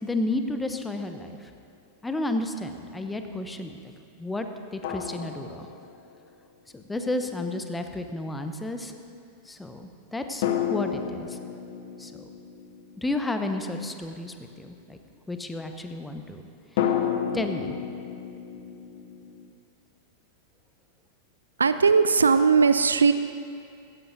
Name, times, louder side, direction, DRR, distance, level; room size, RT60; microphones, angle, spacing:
voice 1, 0.0-1.5 2.0-3.9 4.2-4.5 4.7-5.7 6.7-8.9 9.5-11.4 12.0-12.1 13.0-15.0 15.3-16.4 17.3-17.8, left 2 dB, 10° left, 6 dB, 0.8 m, -32 dB
sound 1, 1.2-1.4 4.8-6.3 10.4-14.1 16.8-19.5, left 9 dB, 50° left, 0.8 m, -32 dB
voice 2, 21.6-23.1, right 5 dB, 75° right, 11 dB, 0.4 m, -19 dB
16.5 x 14.5 x 2.7 m, 2.5 s
figure-of-eight pair, 90°, 0 cm